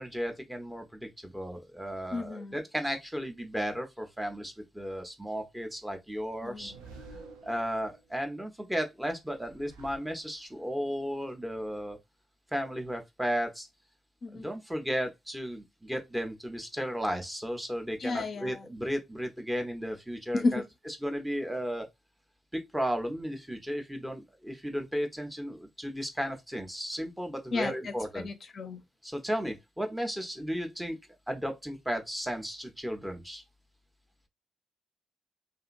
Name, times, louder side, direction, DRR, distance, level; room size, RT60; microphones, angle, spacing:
voice 1, 0.0-6.7 7.1-12.0 12.5-13.7 14.3-20.6 21.0-21.9 22.5-28.3 29.0-31.0 31.3-33.4, equal, 10° right, 0.9 m, -34 dB
voice 2, 2.1-2.6 6.4-6.8 14.2-14.5 18.0-18.7 20.3-20.6 27.5-28.8, left 3 dB, 55° left, 0.5 m, -33 dB
sound 1, 6.1-8.1 9.2-10.7, right 3 dB, 85° right, 0.5 m, -51 dB
2.7 x 2.5 x 2.5 m
hypercardioid pair, 40°, 0 cm